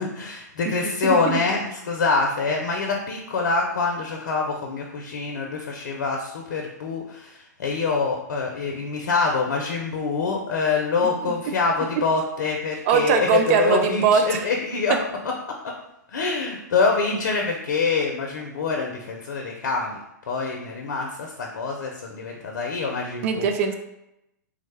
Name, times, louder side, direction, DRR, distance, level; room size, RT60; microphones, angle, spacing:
voice 1, 0.0-14.9 15.5-15.6 16.1-20.0 20.3-23.5, left 4 dB, 75° left, 1 dB, 0.5 m, -25 dB
voice 2, 0.7-1.4 11.0-11.4 12.9-14.4 14.9-15.0 23.2-23.7, right 7 dB, 45° right, 6 dB, 0.4 m, -22 dB
3.4 x 2.1 x 3.3 m, 0.86 s
hypercardioid pair, 120°, 10 cm